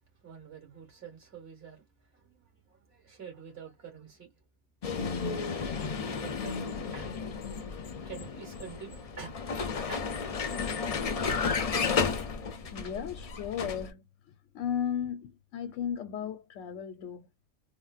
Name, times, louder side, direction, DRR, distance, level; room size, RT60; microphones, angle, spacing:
voice 1, 0.2-4.4 6.0-6.6 6.9-7.1 8.0-9.3 9.9-10.1, right 6 dB, 55° right, 2.0 m, -47 dB
Vehicle, 4.8-13.9, left 5 dB, 50° left, 0.4 m, -33 dB
voice 2, 12.7-17.3, left 8 dB, 85° left, 1.0 m, -35 dB
3.6 x 2.0 x 2.4 m
omnidirectional pair, 1.2 m